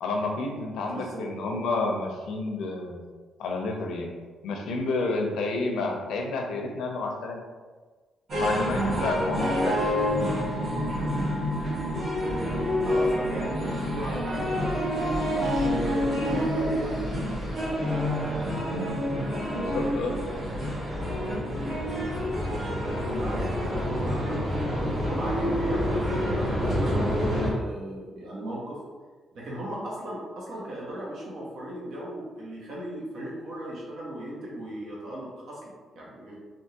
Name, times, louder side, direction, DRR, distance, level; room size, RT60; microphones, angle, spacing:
voice 1, 0.0-3.0 3.4-4.1 4.4-7.4 8.4-9.8 19.5-20.2, left 3 dB, 90° left, 2 dB, 0.5 m, -30 dB
voice 2, 0.9-1.2 12.8-17.0 23.1-24.5 25.0-28.8 29.3-36.4, right 1 dB, 70° right, -5 dB, 1.1 m, -37 dB
sound 1, 8.3-27.5, equal, 45° right, 1.3 m, -27 dB
3.4 x 2.6 x 2.8 m, 1.4 s
cardioid pair, 110°, 0 cm